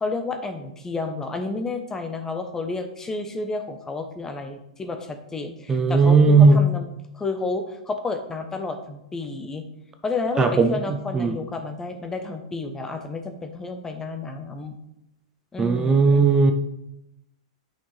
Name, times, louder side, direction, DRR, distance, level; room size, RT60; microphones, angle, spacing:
voice 1, 0.0-6.9 7.1-9.7 10.0-14.7 15.5-16.3, left 3 dB, 15° left, 7 dB, 0.8 m, -31 dB
voice 2, 5.7-6.6 10.4-10.7 11.1-11.3 15.6-16.5, right 4 dB, 20° right, 6 dB, 0.7 m, -16 dB
8.5 x 5.9 x 3.3 m, 0.84 s
hypercardioid pair, 115°, 3 cm